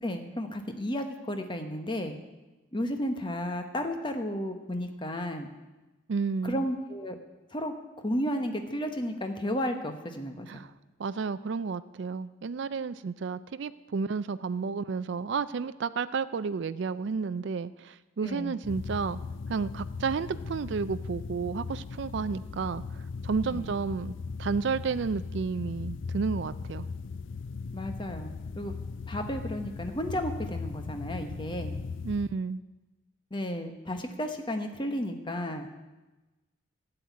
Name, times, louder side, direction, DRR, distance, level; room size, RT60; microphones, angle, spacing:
voice 1, 0.0-2.2 2.7-5.5 6.4-7.2 7.5-10.6 18.2-18.6 23.4-23.7 27.7-28.7 29.1-31.8 33.3-35.7, equal, 25° left, 6 dB, 1.1 m, -33 dB
voice 2, 6.1-6.6 10.5-10.7 11.0-19.2 19.5-22.8 23.2-24.1 24.4-26.9 32.0-32.6, right 5 dB, 55° right, 13 dB, 0.4 m, -31 dB
sound 1, 18.6-32.3, left 4 dB, 65° left, 0.4 m, -38 dB
12.5 x 8.0 x 9.3 m, 1.1 s
head